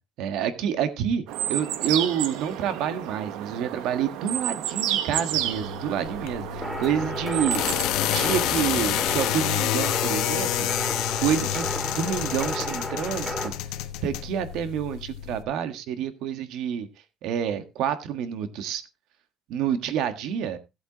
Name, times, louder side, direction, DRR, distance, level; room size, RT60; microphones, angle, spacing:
voice 1, 0.2-7.6 8.0-13.5 14.0-16.9 17.2-18.8 19.5-20.6, right 9 dB, 60° right, 1.5 m, -28 dB
sound 1, 1.3-7.8, right 11 dB, 80° right, 1.1 m, -31 dB
sound 2, 5.3-15.4, left 13 dB, 70° left, 1.0 m, -29 dB
sound 3, 6.6-13.5, equal, ahead, 2.1 m, -33 dB
17.0 x 8.0 x 3.0 m
cardioid pair, 175°, 0 cm